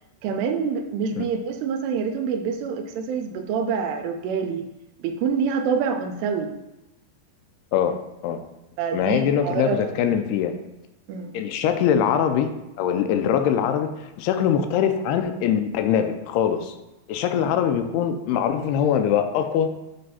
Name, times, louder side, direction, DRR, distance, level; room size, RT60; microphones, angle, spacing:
voice 1, 0.2-4.6 5.0-6.5 8.8-9.8 11.1-11.3, right 6 dB, 85° right, 5 dB, 2.7 m, -26 dB
voice 2, 8.9-10.5 11.3-12.5 12.8-16.7 17.1-19.7, left 8 dB, 80° left, 7 dB, 2.5 m, -22 dB
7.8 x 3.3 x 5.5 m, 0.97 s
omnidirectional pair, 4.7 m